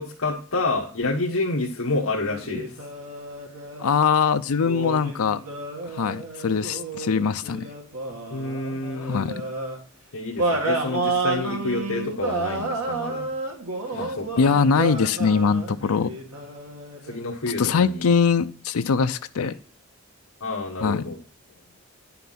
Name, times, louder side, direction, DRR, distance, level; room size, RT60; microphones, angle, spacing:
voice 1, 0.0-2.8 8.3-9.2 10.1-13.3 13.9-14.3 17.0-18.1 19.4-19.5 20.4-21.2, left 2 dB, 75° left, -3 dB, 1.4 m, -28 dB
sound 1, 2.2-4.0 4.6-9.8 10.4-17.2, right 2 dB, 90° right, 2.5 m, -31 dB
voice 2, 3.8-5.4 5.9-7.6 9.0-9.3 14.4-16.1 17.6-19.5 20.8-21.0, left 5 dB, 90° left, 10 dB, 0.5 m, -22 dB
10.0 x 5.8 x 5.8 m, 0.41 s
head